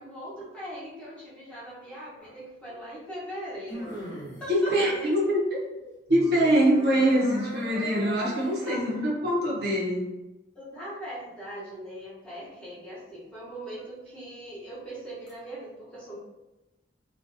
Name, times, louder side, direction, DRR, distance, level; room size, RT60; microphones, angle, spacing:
voice 1, 0.0-4.0 4.4-5.1 8.6-8.9 10.5-16.2, equal, 5° left, -9 dB, 0.8 m, -40 dB
sound 1, 2.2-2.3 3.7-4.5 6.1-8.8 15.3-15.4, right 1 dB, 70° left, 0.9 m, -39 dB
voice 2, 4.5-5.4 6.1-10.1, equal, 60° right, -3 dB, 0.5 m, -24 dB
2.5 x 2.1 x 2.5 m, 1.0 s
head